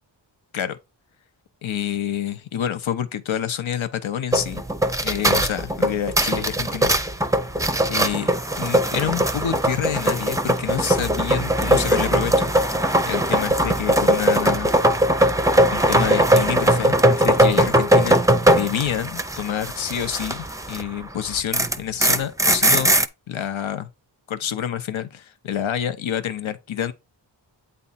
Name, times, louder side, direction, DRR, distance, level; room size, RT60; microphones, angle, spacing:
voice 1, 1.6-4.6 5.0-6.9 7.9-8.3 8.6-12.5 13.0-14.7 15.7-18.2 18.5-23.0 23.3-23.9 24.3-26.9, left 9 dB, 85° left, 0.7 m, -27 dB
sound 1, 4.3-20.9 21.2-23.1, right 1 dB, 5° right, 0.5 m, -20 dB
8.5 x 3.4 x 4.1 m
wide cardioid pair, 55°, 46 cm